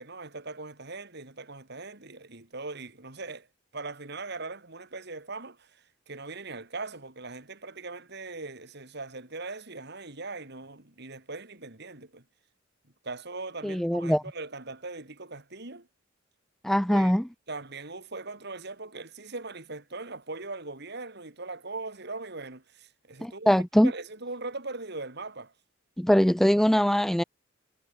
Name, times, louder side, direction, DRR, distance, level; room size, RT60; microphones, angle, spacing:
voice 1, 0.0-3.5 3.7-12.2 13.0-15.9 16.9-17.1 17.5-23.6 23.8-25.5, right 3 dB, 55° right, 3.5 m, -40 dB
voice 2, 13.6-14.2 16.6-17.2 23.2-23.9 26.0-27.2, equal, ahead, 0.4 m, -22 dB
head